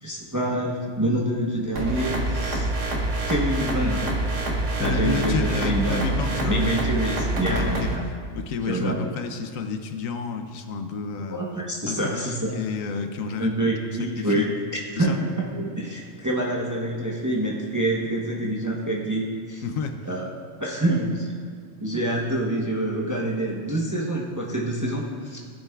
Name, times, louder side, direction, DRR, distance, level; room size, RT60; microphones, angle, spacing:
voice 1, 0.0-2.7 3.3-4.2 4.8-6.1 6.4-8.0 8.7-9.1 11.3-12.6 13.4-19.6 20.0-21.3 21.8-25.4, right 1 dB, 15° right, -2 dB, 0.7 m, -26 dB
sound 1, 1.8-8.0, right 2 dB, 60° right, 1.4 m, -26 dB
voice 2, 4.8-6.8 7.5-7.9 8.3-11.4 11.9-13.6 14.2-14.5 15.0-15.2 19.6-20.0, left 5 dB, 75° left, 6 dB, 1.0 m, -30 dB
15.5 x 6.7 x 2.3 m, 2.1 s
omnidirectional pair, 1.4 m